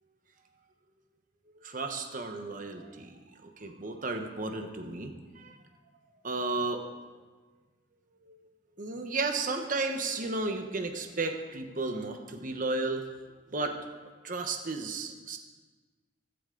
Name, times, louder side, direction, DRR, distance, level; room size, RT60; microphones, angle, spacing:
voice 1, 1.6-3.1 3.4-5.6 6.2-6.8 8.2-8.3 8.8-13.0 13.5-13.8 14.2-15.4, right 3 dB, 45° right, 5 dB, 1.1 m, -33 dB
15.0 x 13.0 x 3.9 m, 1.4 s
head